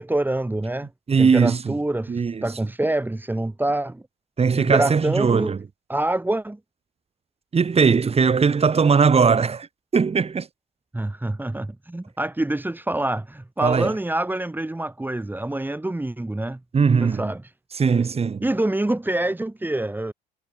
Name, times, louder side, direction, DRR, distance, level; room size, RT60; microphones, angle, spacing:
voice 1, 0.0-0.9 1.2-4.0 4.5-5.5 5.9-6.6 10.9-16.6 17.0-17.4 18.4-20.1, right 1 dB, 10° right, 3.4 m, -26 dB
voice 2, 1.1-1.7 2.1-2.4 4.4-5.6 7.5-9.7 9.9-10.5 13.6-13.9 16.7-17.3 17.7-18.5, right 5 dB, 30° right, 3.2 m, -19 dB
hypercardioid pair, 70°, 20 cm